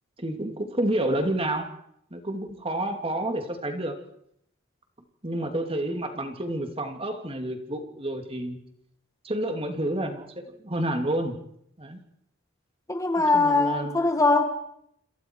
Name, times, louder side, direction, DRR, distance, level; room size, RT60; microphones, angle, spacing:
voice 1, 0.2-1.7 2.1-4.0 5.2-8.6 9.2-11.4 11.8-12.0 13.2-14.1, right 1 dB, 30° right, 5 dB, 2.8 m, -29 dB
voice 2, 12.9-14.5, left 3 dB, 15° left, 6 dB, 1.6 m, -21 dB
27.5 x 27.0 x 4.7 m, 0.73 s
head